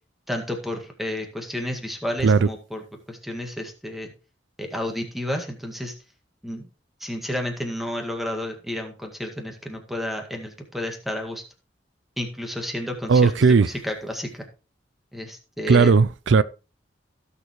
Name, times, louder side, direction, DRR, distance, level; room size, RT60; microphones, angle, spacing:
voice 1, 0.3-2.8 3.1-4.1 4.6-5.9 6.4-6.7 7.0-11.4 12.2-14.5 15.1-16.0, left 1 dB, ahead, 2.0 m, -31 dB
voice 2, 13.1-13.7 15.7-16.4, right 5 dB, 90° right, 0.5 m, -16 dB
16.5 x 6.9 x 3.1 m
head